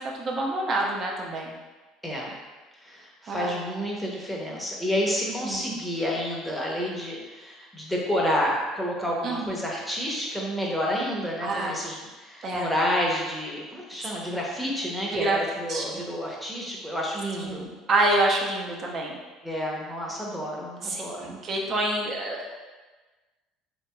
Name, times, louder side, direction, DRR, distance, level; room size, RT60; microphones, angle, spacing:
voice 1, 0.2-1.6 3.2-3.6 5.3-5.8 9.2-9.6 11.4-11.8 12.4-12.7 15.1-15.4 15.7-16.0 17.4-19.2 20.8-22.5, right 2 dB, 45° right, -1 dB, 0.6 m, -27 dB
voice 2, 2.0-2.4 2.8-17.7 19.4-21.4, equal, ahead, -4 dB, 0.7 m, -29 dB
2.8 x 2.8 x 2.3 m, 1.3 s
hypercardioid pair, 70°, 0 cm